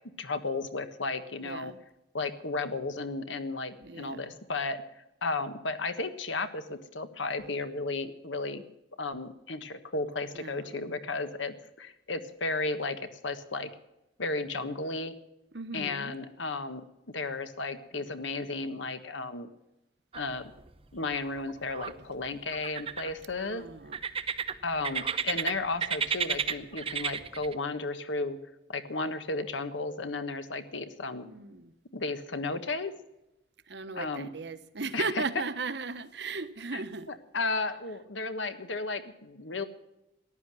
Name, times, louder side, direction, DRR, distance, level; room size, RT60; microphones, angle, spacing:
voice 1, 0.2-1.7 2.1-4.8 5.2-8.6 9.0-13.7 14.2-15.1 15.7-16.8 17.1-19.5 20.1-20.5 20.9-23.6 24.6-28.4 28.7-31.3 31.9-32.9 33.9-34.3 34.9-35.2 36.7-36.8 37.1-39.6, left 3 dB, 85° left, 10 dB, 1.4 m, -34 dB
voice 2, 1.4-1.8 3.8-4.3 10.3-10.8 15.5-16.2 23.3-24.0 31.2-31.7 33.7-37.1, right 4 dB, 65° right, 12 dB, 1.0 m, -37 dB
sound 1, 20.1-20.7 21.0-21.9 22.5-23.4 23.9-25.5 25.8-27.5, right 6 dB, 30° right, 0.8 m, -32 dB
14.5 x 11.0 x 7.6 m, 0.90 s
head